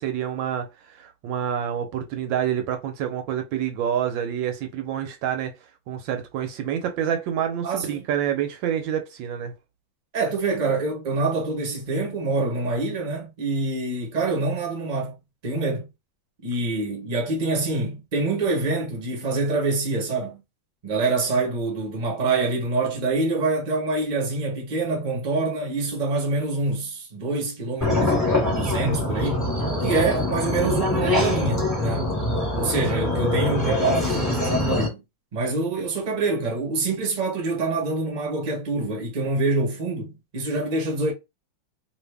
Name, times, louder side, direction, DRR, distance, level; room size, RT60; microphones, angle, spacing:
voice 1, 0.0-9.5, right 9 dB, 75° right, 1.3 m, -28 dB
voice 2, 7.6-8.1 10.1-15.2 15.4-15.9 16.4-20.4 20.8-29.5 29.8-32.1 32.5-35.0 35.3-41.1, right 3 dB, 30° right, 0.8 m, -26 dB
sound 1, 27.8-34.9, left 1 dB, 10° left, 1.1 m, -24 dB
2.8 x 2.6 x 3.3 m
omnidirectional pair, 2.2 m